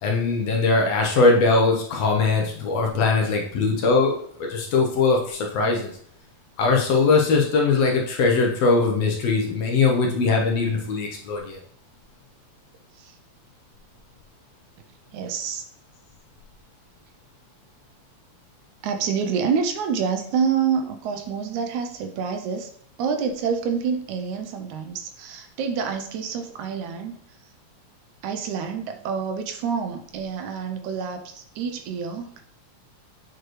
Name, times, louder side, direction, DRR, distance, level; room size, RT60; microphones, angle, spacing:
voice 1, 0.0-5.9 6.6-11.6, left 4 dB, 65° left, 1 dB, 1.8 m, -21 dB
voice 2, 15.1-15.7 18.8-22.7 23.0-27.2 28.2-32.4, right 6 dB, 80° right, 6 dB, 2.0 m, -27 dB
7.7 x 4.6 x 3.1 m, 0.62 s
omnidirectional pair, 3.4 m